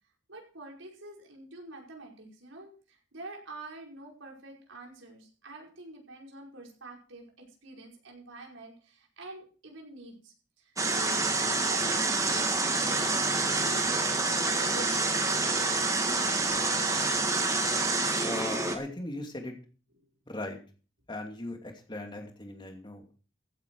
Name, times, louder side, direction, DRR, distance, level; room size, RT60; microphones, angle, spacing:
voice 1, 0.3-2.7 3.1-13.1 13.6-13.9 14.3-15.4 16.4-16.6, right 2 dB, 85° right, -1 dB, 5.4 m, -46 dB
sound 1, 10.8-18.8, right 3 dB, 15° right, 1.9 m, -27 dB
voice 2, 18.2-19.5 20.3-20.6 21.1-23.1, left 2 dB, 25° left, 3 dB, 2.6 m, -38 dB
15.5 x 9.2 x 4.8 m, 0.38 s
head